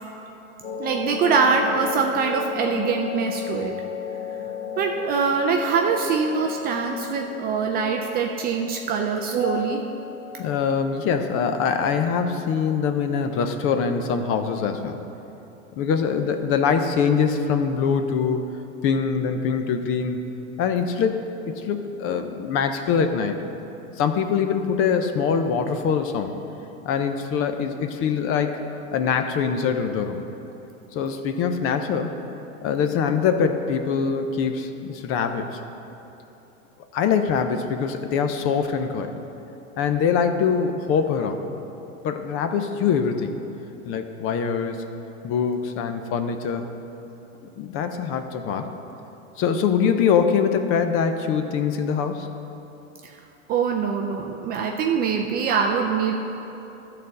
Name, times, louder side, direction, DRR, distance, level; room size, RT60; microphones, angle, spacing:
sound 1, 0.6-12.1, left 7 dB, 70° left, 1.2 m, -35 dB
voice 1, 0.8-3.8 4.8-10.0 53.5-56.2, right 5 dB, 25° right, 2 dB, 0.4 m, -23 dB
voice 2, 10.4-15.0 15.7-18.5 18.8-20.2 20.6-21.3 21.6-23.4 24.0-26.3 26.8-28.6 28.9-30.2 30.9-32.1 32.6-35.6 36.9-39.1 39.8-41.4 42.0-43.4 43.9-44.8 45.2-46.7 47.6-48.7 49.4-52.3, left 6 dB, 35° left, 7 dB, 0.6 m, -23 dB
12.5 x 4.2 x 6.5 m, 3.0 s
hypercardioid pair, 125°, 41 cm